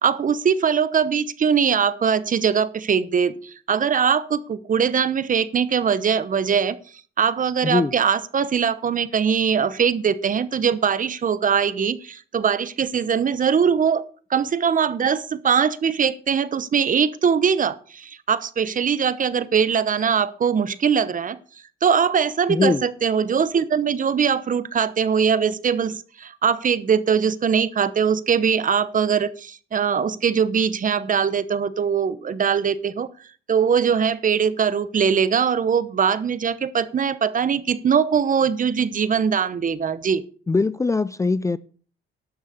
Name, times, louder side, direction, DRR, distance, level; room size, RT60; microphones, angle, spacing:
voice 1, 0.0-6.8 7.2-14.0 14.3-21.4 21.8-33.1 33.5-40.2, right 7 dB, 40° right, 0.9 m, -21 dB
voice 2, 7.6-7.9 22.5-22.9 40.5-41.6, left 3 dB, 15° left, 0.4 m, -21 dB
12.0 x 6.4 x 6.7 m
cardioid pair, 90°, 20 cm